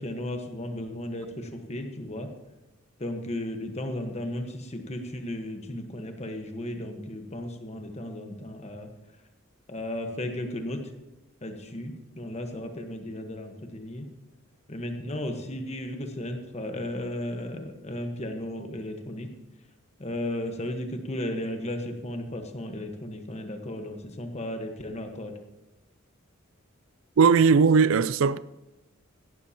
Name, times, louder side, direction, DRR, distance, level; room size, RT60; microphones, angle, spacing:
voice 1, 0.0-2.3 3.0-8.9 9.7-10.8 11.4-14.1 14.7-19.3 20.0-25.3, left 1 dB, 30° left, 1.3 m, -35 dB
voice 2, 27.2-28.4, right 5 dB, 70° right, 0.4 m, -19 dB
17.0 x 12.5 x 2.9 m
head